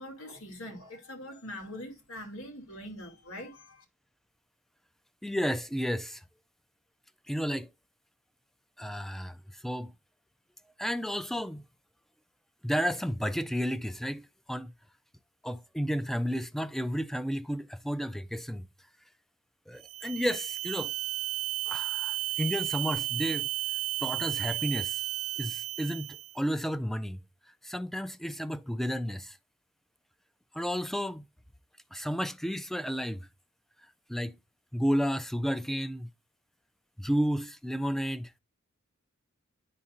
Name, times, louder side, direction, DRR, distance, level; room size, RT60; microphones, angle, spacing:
voice 1, 0.0-3.8, left 1 dB, 75° left, 2.4 m, -43 dB
voice 2, 5.2-6.2 7.3-7.7 8.8-9.9 10.8-11.7 12.6-14.7 15.4-18.7 19.7-20.9 21.7-23.5 24.0-25.0 25.4-27.2 27.6-29.4 30.5-31.3 31.9-33.3 34.1-34.4 34.7-36.1 37.0-38.3, equal, ahead, 0.3 m, -32 dB
sound 1, 19.8-26.4, right 19 dB, 75° right, 0.5 m, -33 dB
11.0 x 4.2 x 2.5 m
head